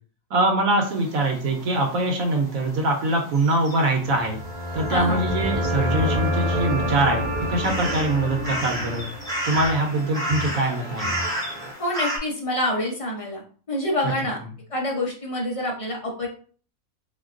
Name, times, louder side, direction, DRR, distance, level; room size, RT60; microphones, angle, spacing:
voice 1, 0.3-4.4 4.7-9.1 9.4-11.1 14.0-14.1, right 2 dB, 75° right, 2 dB, 1.1 m, -23 dB
sound 1, 0.8-12.2, equal, 5° left, 0.7 m, -34 dB
sound 2, 4.2-11.7, left 1 dB, 45° right, 0.6 m, -28 dB
voice 2, 4.9-5.2 11.8-13.4 13.7-14.4 14.7-16.3, left 1 dB, 65° left, -2 dB, 0.3 m, -26 dB
3.7 x 2.2 x 2.4 m, 0.42 s
omnidirectional pair, 1.5 m